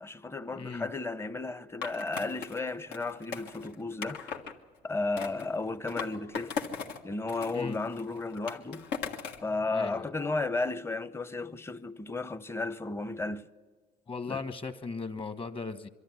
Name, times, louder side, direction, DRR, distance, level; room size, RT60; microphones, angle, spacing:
voice 1, 0.0-4.4 4.8-6.5 7.0-8.8 9.4-13.5 14.3-14.4, left 3 dB, 15° left, 0.8 m, -34 dB
voice 2, 0.6-0.9 7.5-7.8 9.7-10.1 14.1-15.9, left 4 dB, 30° left, 1.3 m, -37 dB
Skateboard, 1.8-4.5 5.2-7.0 7.3-9.5, left 6 dB, 85° left, 1.8 m, -39 dB
23.5 x 13.0 x 9.8 m
cardioid pair, 110°, 17 cm